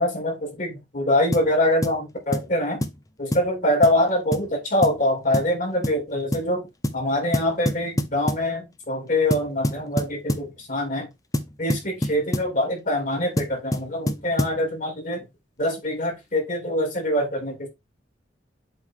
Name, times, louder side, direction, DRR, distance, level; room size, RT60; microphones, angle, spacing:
voice 1, 0.0-2.8 3.2-6.7 6.9-11.1 11.6-15.2 15.6-17.7, left 1 dB, 45° left, 3.3 m, -24 dB
sound 1, 1.3-1.5 1.8-2.0 2.3-2.5 2.8-3.0 3.3-3.5 3.8-4.0 4.3-4.5 4.8-5.0 5.3-5.6 5.8-6.0 6.3-6.5 6.8-7.0 7.3-8.5 9.3-10.5 11.3-12.5 13.4-14.6, left 1 dB, 20° left, 0.7 m, -26 dB
7.7 x 3.9 x 3.8 m
head